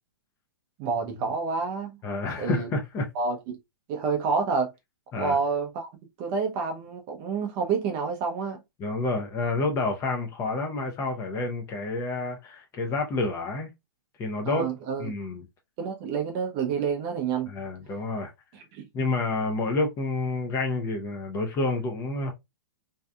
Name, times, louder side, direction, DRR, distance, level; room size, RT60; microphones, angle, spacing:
voice 1, 0.8-2.0 2.4-2.7 3.1-3.6 3.9-4.7 5.1-5.9 6.2-8.6 14.5-15.1 15.8-17.5 18.5-18.9, right 5 dB, 35° right, 0.5 m, -28 dB
voice 2, 2.0-3.1 5.1-5.4 8.8-13.7 14.2-14.7 15.0-15.4 17.5-18.3 18.9-22.3, left 3 dB, 25° left, 0.5 m, -29 dB
2.6 x 2.3 x 2.2 m
hypercardioid pair, 135°, 12 cm